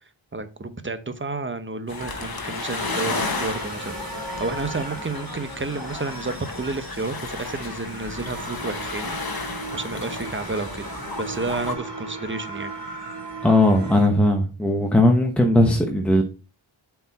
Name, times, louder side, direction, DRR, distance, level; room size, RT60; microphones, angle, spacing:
voice 1, 0.3-9.5 9.7-10.9 11.2-12.7, right 3 dB, 25° right, 0.9 m, -31 dB
sound 1, 1.9-11.8, left 3 dB, 50° left, 1.3 m, -33 dB
sound 2, 2.8-14.1, right 2 dB, 60° right, 2.5 m, -37 dB
voice 2, 13.4-16.2, left 1 dB, 5° left, 1.0 m, -18 dB
7.7 x 4.7 x 4.1 m
wide cardioid pair, 65°, 46 cm